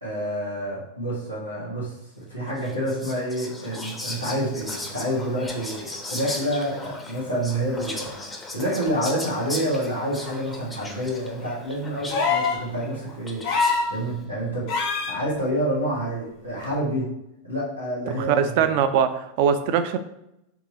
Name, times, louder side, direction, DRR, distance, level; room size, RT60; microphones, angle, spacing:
voice 1, 0.0-13.4 13.9-17.1 17.4-18.7, equal, 90° left, -8 dB, 1.4 m, -28 dB
Whispering, 2.6-14.0, left 2 dB, 10° left, 0.7 m, -37 dB
sound 1, 12.1-12.6 13.4-13.9 14.7-15.2 16.6-16.7, left 4 dB, 45° left, 0.8 m, -23 dB
voice 2, 18.1-20.0, right 7 dB, 45° right, 9 dB, 0.4 m, -22 dB
3.6 x 3.0 x 3.9 m, 0.82 s
figure-of-eight pair, 90°, 0 cm